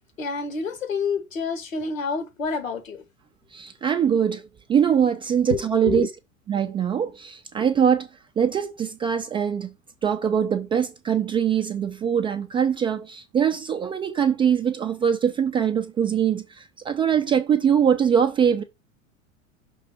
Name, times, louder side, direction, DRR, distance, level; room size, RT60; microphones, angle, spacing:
voice 1, 0.2-3.0 5.5-5.6 5.8-6.1, left 5 dB, 75° left, 1.5 m, -28 dB
voice 2, 3.5-6.1 6.5-8.1 8.4-9.7 10.0-18.6, right 8 dB, 15° right, 0.4 m, -22 dB
6.1 x 3.4 x 5.6 m
figure-of-eight pair, 85°, 40 cm